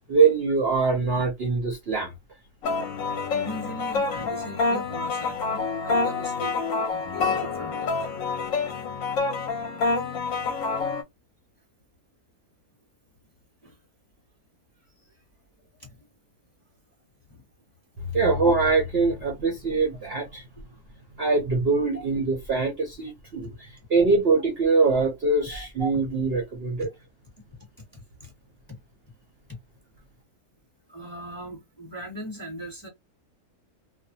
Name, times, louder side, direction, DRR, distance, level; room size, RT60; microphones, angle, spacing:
voice 1, 0.1-2.1 18.1-20.4 21.2-26.9, right 4 dB, 55° right, 0.7 m, -23 dB
sound 1, 2.6-11.0, left 4 dB, 65° left, 0.9 m, -27 dB
voice 2, 3.3-8.1 13.6-13.8 15.0-15.1 15.8-16.1 17.3-17.4 20.6-20.7 21.9-22.0 23.4-23.6 25.5-25.6 27.5-28.3 30.9-32.9, right 1 dB, 15° left, 0.9 m, -40 dB
2.5 x 2.0 x 2.6 m
omnidirectional pair, 1.6 m